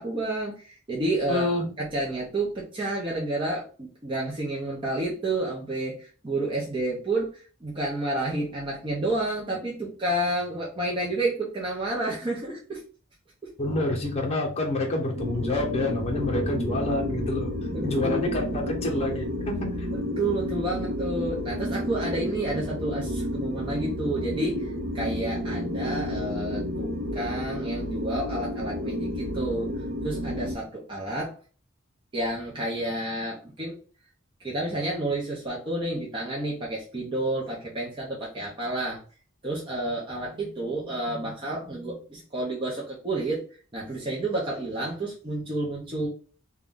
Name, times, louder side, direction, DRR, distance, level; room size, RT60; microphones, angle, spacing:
voice 1, 0.0-12.8 17.7-18.8 19.9-29.7 30.0-31.3 32.1-33.8 34.4-39.0 39.4-43.5 43.7-46.1, right 2 dB, 25° right, -4 dB, 0.6 m, -30 dB
voice 2, 1.3-1.7 13.6-17.5 17.8-19.9, left 2 dB, 30° left, 0 dB, 0.8 m, -27 dB
sound 1, 15.2-30.6, left 1 dB, 70° right, 0.7 m, -31 dB
2.5 x 2.2 x 3.6 m, 0.38 s
head